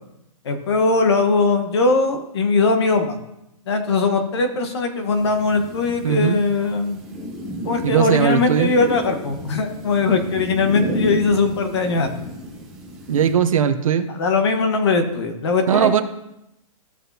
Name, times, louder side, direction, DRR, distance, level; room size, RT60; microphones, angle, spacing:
voice 1, 0.4-3.2 3.7-7.0 7.6-12.1 14.1-16.0, left 3 dB, 45° left, 6 dB, 1.2 m, -20 dB
sound 1, 5.1-13.3, equal, 5° right, 0.8 m, -32 dB
voice 2, 6.0-6.4 7.8-8.7 13.1-14.1 15.7-16.0, right 8 dB, 65° right, 9 dB, 0.7 m, -18 dB
15.0 x 6.0 x 2.8 m, 0.86 s
hypercardioid pair, 175°, 19 cm